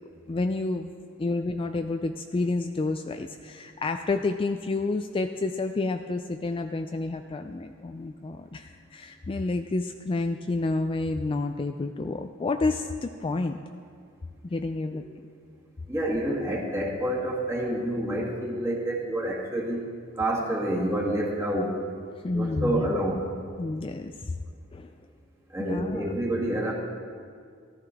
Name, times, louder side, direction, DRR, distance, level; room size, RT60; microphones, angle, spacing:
voice 1, 0.3-0.9 1.2-13.6 14.4-15.0 22.2-22.9 23.6-24.3 24.7-24.9 25.6-26.1, left 3 dB, 25° left, 6 dB, 0.3 m, -29 dB
voice 2, 15.9-19.9 20.1-21.8 22.3-23.3 25.5-26.7, right 1 dB, 15° right, -3 dB, 1.8 m, -28 dB
14.0 x 13.5 x 3.5 m, 2.1 s
head